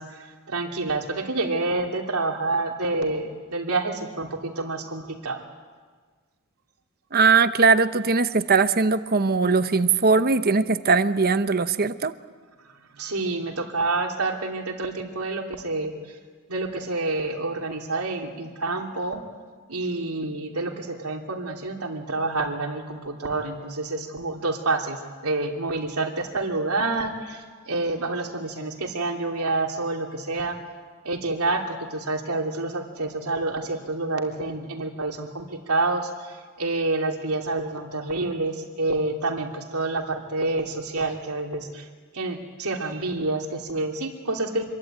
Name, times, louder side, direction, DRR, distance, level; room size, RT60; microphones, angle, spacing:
voice 1, 0.0-5.4 13.0-16.2 16.5-19.2 19.7-30.6 31.0-41.9 42.1-44.7, right 2 dB, 90° right, 2 dB, 3.1 m, -28 dB
voice 2, 7.1-12.1, right 4 dB, 45° right, 11 dB, 0.9 m, -20 dB
26.5 x 22.5 x 9.1 m, 1.5 s
head